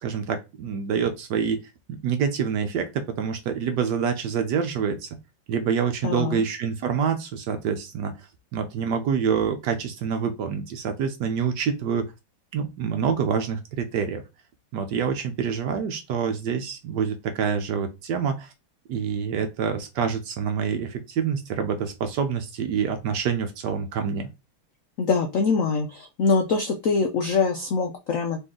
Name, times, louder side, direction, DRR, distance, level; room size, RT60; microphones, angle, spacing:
voice 1, 0.0-5.1 5.5-8.1 8.5-12.1 12.5-14.2 14.7-18.5 18.9-24.3, right 7 dB, 70° right, 7 dB, 1.1 m, -26 dB
voice 2, 6.0-6.4 25.0-28.4, left 4 dB, 85° left, 5 dB, 0.7 m, -23 dB
4.1 x 3.0 x 3.7 m, 0.25 s
omnidirectional pair, 2.2 m